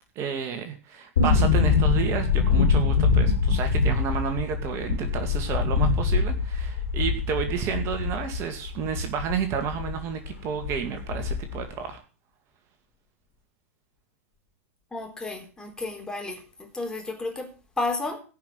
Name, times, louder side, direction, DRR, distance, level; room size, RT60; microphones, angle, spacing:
voice 1, 0.2-12.0, right 7 dB, 40° right, 2.2 m, -31 dB
sound 1, 1.2-10.0 10.2-10.3 10.6-11.6 11.9-12.0, left 5 dB, 70° left, 4.2 m, -23 dB
voice 2, 14.9-18.2, left 2 dB, 10° left, 4.0 m, -32 dB
16.5 x 5.8 x 7.9 m
hypercardioid pair, 100°, 7 cm